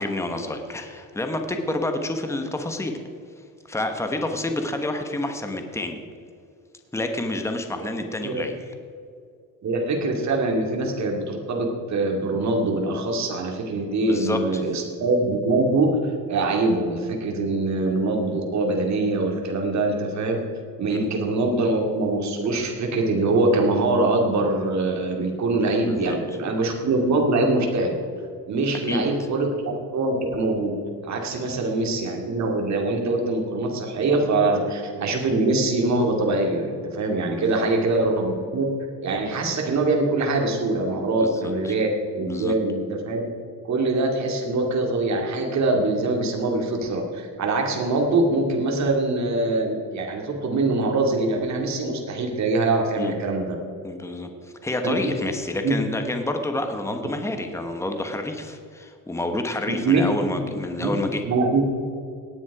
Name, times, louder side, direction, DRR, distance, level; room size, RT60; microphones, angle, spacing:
voice 1, 0.0-2.9 3.7-6.0 6.9-8.7 14.0-14.6 20.9-21.0 25.8-26.2 28.8-29.0 31.5-31.6 37.3-37.7 41.2-41.7 42.2-42.6 53.0-53.1 53.8-61.2, left 2 dB, 5° left, 5 dB, 1.2 m, -29 dB
voice 2, 9.6-20.4 20.8-27.9 28.5-29.5 29.9-30.7 31.0-38.7 39.0-43.2 43.6-53.6 54.8-55.0 55.6-55.8 59.7-60.0 60.3-60.4 60.8-60.9 61.2-61.7, right 2 dB, 50° right, 1 dB, 2.5 m, -23 dB
17.5 x 9.7 x 4.9 m, 2.4 s
cardioid pair, 140°, 37 cm